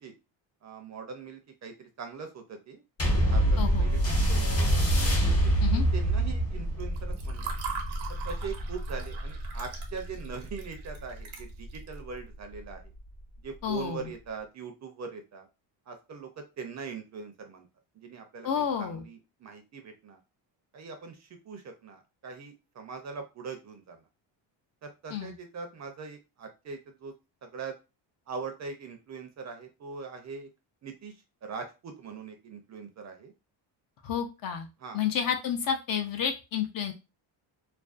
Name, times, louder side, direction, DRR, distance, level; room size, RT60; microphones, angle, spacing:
voice 1, 0.6-4.0 4.3-4.9 5.4-5.6 5.9-7.6 8.2-12.8 13.4-15.5 15.9-17.7 18.0-20.2 20.7-24.0 24.8-27.1 27.4-27.8 28.3-30.5 30.8-31.1 31.4-33.3 34.8-35.0, right 5 dB, 40° right, 5 dB, 0.5 m, -41 dB
sound 1, 3.0-11.8 12.5-12.6, right 1 dB, 30° left, 0.9 m, -26 dB
voice 2, 3.6-3.9 5.6-5.8 13.6-14.1 18.4-19.1 25.1-25.3 34.0-34.7 34.9-36.9, left 8 dB, 50° left, 5 dB, 0.5 m, -30 dB
Water / Fill (with liquid), 6.8-11.9, right 6 dB, 90° right, 0.8 m, -41 dB
2.5 x 2.2 x 2.4 m, 0.28 s
cardioid pair, 125°, 46 cm